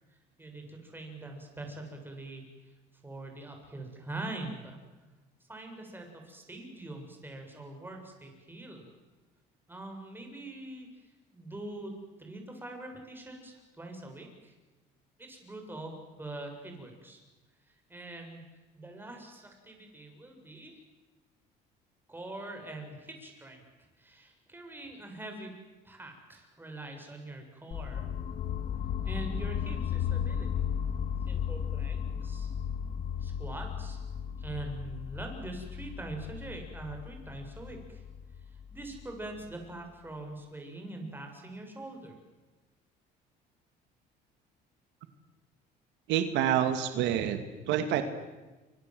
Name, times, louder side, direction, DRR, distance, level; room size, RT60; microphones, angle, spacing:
voice 1, 0.1-2.7 3.0-4.8 5.4-8.9 9.7-14.5 15.2-17.2 17.7-20.8 22.1-23.6 24.0-25.5 25.8-28.1 29.0-30.7 31.3-32.5 33.2-34.0 34.4-38.0 38.5-42.2, right 2 dB, 10° right, 3 dB, 7.5 m, -43 dB
sound 1, 27.7-39.6, left 8 dB, 50° left, 1.9 m, -35 dB
voice 2, 46.1-47.4 47.7-48.0, right 10 dB, 80° right, 8 dB, 2.3 m, -27 dB
29.0 x 25.0 x 7.9 m, 1.2 s
cardioid pair, 110°, 18 cm